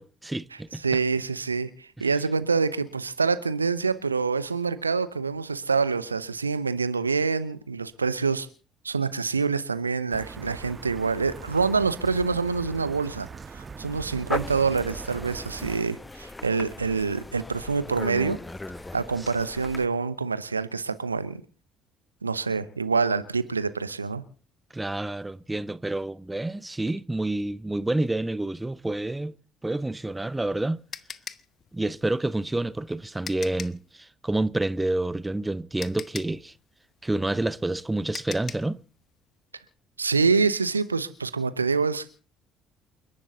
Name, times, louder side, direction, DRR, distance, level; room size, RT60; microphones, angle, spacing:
voice 1, 0.0-0.8 24.7-29.3 29.6-30.8 31.7-36.5 37.0-38.8, right 2 dB, 10° right, 0.7 m, -28 dB
voice 2, 0.8-8.5 8.8-13.3 13.5-18.4 18.9-21.4 22.2-24.2 40.0-42.2, right 4 dB, 85° right, 0.8 m, -26 dB
sound 1, 10.1-15.8, right 5 dB, 30° right, 1.4 m, -41 dB
sound 2, 14.3-19.9, left 2 dB, 15° left, 1.0 m, -38 dB
sound 3, 30.0-33.9 35.3-35.4 35.8-38.8, left 7 dB, 40° left, 0.9 m, -41 dB
29.0 x 11.5 x 4.0 m
figure-of-eight pair, 55°, 0 cm